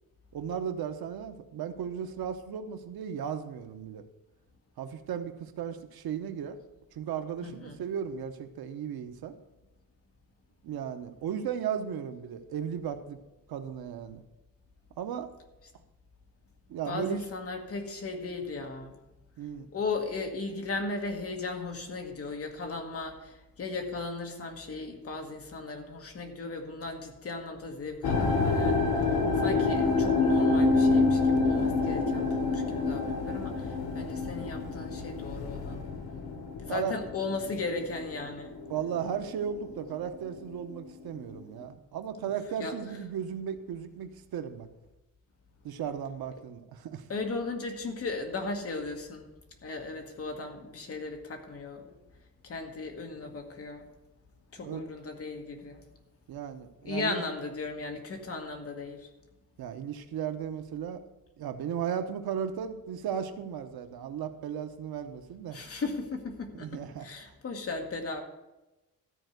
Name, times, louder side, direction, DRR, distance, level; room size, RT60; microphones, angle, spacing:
voice 1, 0.3-4.1 4.8-6.6 6.9-9.3 10.6-13.2 13.5-14.2 15.0-15.3 16.7-17.2 19.4-19.7 36.7-37.0 38.7-44.7 45.6-47.1 54.6-54.8 56.3-57.2 59.6-61.0 61.4-65.6 66.5-67.1, right 8 dB, 85° right, 8 dB, 0.9 m, -35 dB
voice 2, 7.4-7.7 16.9-18.9 19.7-28.8 29.3-35.8 36.6-38.5 42.6-42.7 47.1-49.2 49.6-51.9 52.4-53.9 54.5-55.8 56.8-59.1 65.5-68.2, left 3 dB, 40° left, 4 dB, 1.4 m, -36 dB
sound 1, 28.0-39.2 39.5-40.1 40.7-40.8, left 3 dB, 85° left, 1.4 m, -27 dB
13.0 x 4.5 x 7.9 m, 1.0 s
wide cardioid pair, 180°, 36 cm